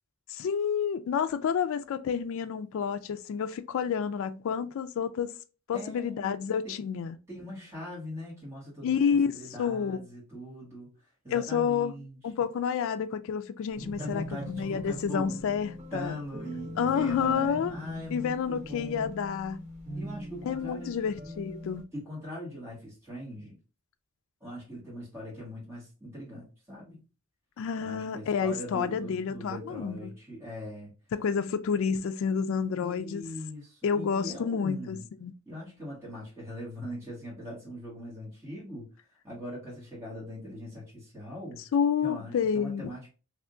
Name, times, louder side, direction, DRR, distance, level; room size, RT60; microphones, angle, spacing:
voice 1, 0.3-5.3 5.7-7.2 8.8-10.0 11.3-11.9 12.2-16.2 16.8-17.7 18.1-19.7 20.4-21.8 27.6-30.1 31.1-33.3 33.8-35.3 41.7-42.9, left 7 dB, 65° left, 0.3 m, -29 dB
voice 2, 5.7-6.8 7.3-9.0 9.3-10.9 11.2-12.2 13.9-15.3 15.9-19.1 19.9-20.9 21.9-23.6 24.4-27.0 27.8-30.9 32.8-35.0 35.4-38.9 39.2-41.6 42.0-43.1, equal, 15° right, 1.6 m, -41 dB
sound 1, 13.7-21.8, equal, 30° right, 0.9 m, -42 dB
3.3 x 2.7 x 2.5 m
head